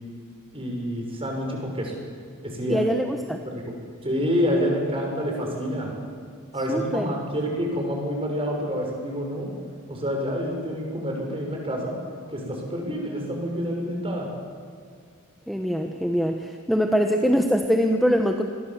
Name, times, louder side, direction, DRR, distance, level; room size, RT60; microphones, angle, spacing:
voice 1, 0.5-1.9 2.4-2.8 3.4-3.6 4.0-5.9 6.5-9.5 9.9-11.9 12.3-14.3, equal, 25° right, 1 dB, 6.1 m, -27 dB
voice 2, 2.7-3.4 6.7-7.2 15.5-18.4, equal, ahead, 4 dB, 1.1 m, -23 dB
27.0 x 22.0 x 7.4 m, 2.1 s
head